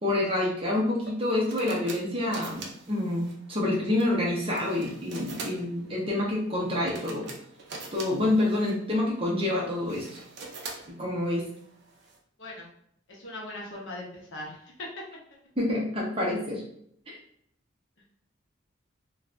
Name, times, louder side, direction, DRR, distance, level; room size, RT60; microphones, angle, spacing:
voice 1, 0.0-7.3 7.9-10.1 10.9-11.4 15.6-16.6 17.1-17.2, left 1 dB, 30° right, -3 dB, 0.8 m, -27 dB
sound 1, 1.0-12.2, right 3 dB, 55° right, 0.5 m, -45 dB
voice 2, 13.1-14.7, left 1 dB, 70° left, -3 dB, 0.9 m, -40 dB
2.5 x 2.5 x 3.3 m, 0.69 s
head